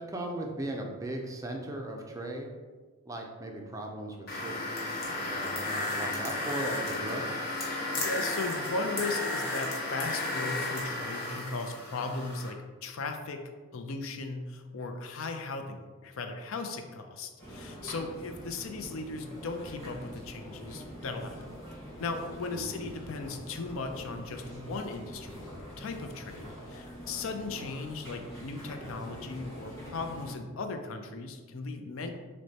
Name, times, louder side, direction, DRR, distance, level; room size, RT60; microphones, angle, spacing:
voice 1, 0.0-2.5 3.1-7.3 22.5-23.0, right 1 dB, 15° right, 1 dB, 0.4 m, -38 dB
sound 1, 4.3-12.5, left 2 dB, 45° left, 0.9 m, -33 dB
voice 2, 7.6-21.5 22.0-32.1, left 3 dB, 70° left, 5 dB, 0.4 m, -37 dB
sound 2, 17.4-30.3, equal, 15° left, 1.4 m, -45 dB
6.1 x 2.1 x 2.8 m, 1.4 s
head